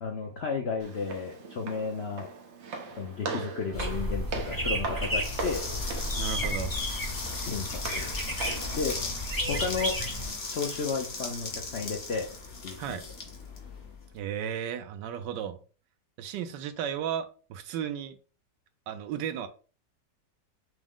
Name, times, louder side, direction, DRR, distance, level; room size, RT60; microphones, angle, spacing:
voice 1, 0.0-2.3 3.0-5.6 7.4-8.1 8.8-9.0 9.5-10.0 10.5-12.3 12.6-13.0, left 5 dB, 75° left, 0.6 m, -33 dB
Walk footsteps, 0.8-8.8, right 3 dB, 55° right, 0.8 m, -39 dB
sound 1, 3.7-10.4, equal, 15° left, 0.9 m, -33 dB
sound 2, 5.1-14.1, left 3 dB, 45° left, 1.0 m, -38 dB
voice 2, 6.2-6.7 12.8-13.0 14.1-15.6 16.2-18.2 18.9-19.5, right 9 dB, 80° right, 1.2 m, -34 dB
6.1 x 2.1 x 3.6 m
omnidirectional pair, 1.9 m